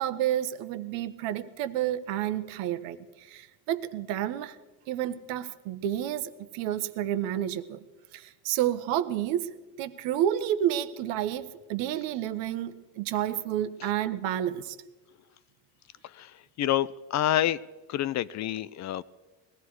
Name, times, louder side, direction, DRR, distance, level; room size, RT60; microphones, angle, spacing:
voice 1, 0.0-4.6 4.9-7.8 8.1-14.8, right 11 dB, 75° right, 12 dB, 1.1 m, -30 dB
voice 2, 16.0-17.6 17.9-19.0, left 12 dB, 40° left, 19 dB, 0.4 m, -28 dB
20.5 x 14.5 x 4.8 m, 1.2 s
cardioid pair, 115°, 44 cm